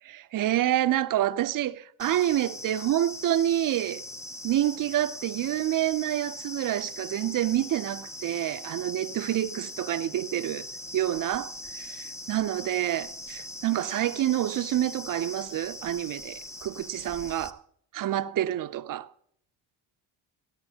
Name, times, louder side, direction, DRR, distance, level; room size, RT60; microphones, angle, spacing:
voice 1, 0.1-4.0 4.4-10.7 10.9-11.5 11.8-17.6 17.9-19.1, right 13 dB, 45° right, 0.5 m, -28 dB
sound 1, 2.0-17.5, left 1 dB, 5° left, 0.5 m, -41 dB
13.5 x 13.0 x 2.8 m
supercardioid pair, 85°, 47 cm